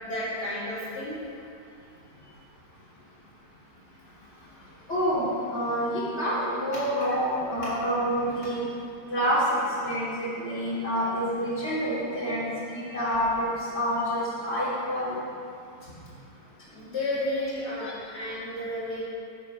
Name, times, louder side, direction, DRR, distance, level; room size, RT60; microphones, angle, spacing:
voice 1, 0.0-1.1 16.7-19.0, left 1 dB, 75° left, -8 dB, 3.6 m, -32 dB
voice 2, 4.9-8.6 9.1-15.2, equal, 40° left, -9 dB, 3.5 m, -27 dB
16.5 x 6.4 x 4.9 m, 2.5 s
omnidirectional pair, 1.7 m